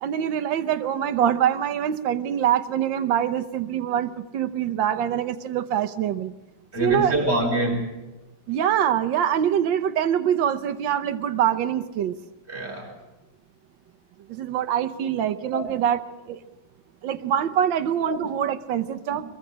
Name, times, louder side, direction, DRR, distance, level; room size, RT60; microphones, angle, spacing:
voice 1, 0.0-6.3 6.8-7.1 8.5-12.1 14.3-16.0 16.3-16.4 17.0-19.2, right 9 dB, 65° right, 10 dB, 1.5 m, -24 dB
voice 2, 6.7-7.9 12.5-13.0 15.5-15.7 18.0-18.2 19.1-19.2, right 1 dB, 30° right, -1 dB, 4.2 m, -26 dB
22.5 x 21.5 x 6.2 m, 1.0 s
omnidirectional pair, 2.4 m